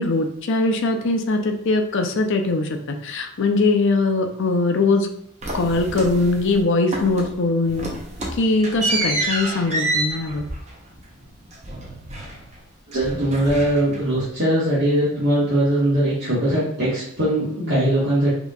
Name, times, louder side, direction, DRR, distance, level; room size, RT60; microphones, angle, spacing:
voice 1, 0.0-5.1 5.5-7.9 8.4-10.4, left 3 dB, 55° left, 5 dB, 0.5 m, -21 dB
sound 1, 5.4-6.6 6.9-7.4 7.7-12.6 12.9-14.2, right 2 dB, 30° right, 0.8 m, -28 dB
voice 2, 12.9-18.3, right 1 dB, 50° right, -11 dB, 1.4 m, -20 dB
5.2 x 3.0 x 2.4 m, 0.71 s
head